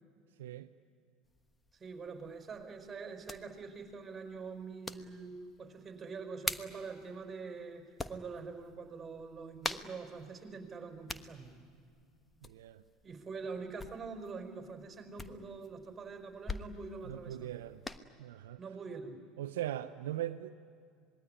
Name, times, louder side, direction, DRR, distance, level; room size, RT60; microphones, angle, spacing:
sound 1, 1.2-18.0, left 3 dB, 15° left, 1.2 m, -46 dB
voice 1, 1.8-7.8 8.1-11.5 13.0-17.6 18.6-19.2, right 4 dB, 30° right, 4.6 m, -44 dB
voice 2, 12.4-12.8 17.0-17.8 18.2-18.6 19.4-20.6, right 13 dB, 80° right, 0.6 m, -40 dB
26.0 x 21.0 x 10.0 m
hypercardioid pair, 80°, 0 cm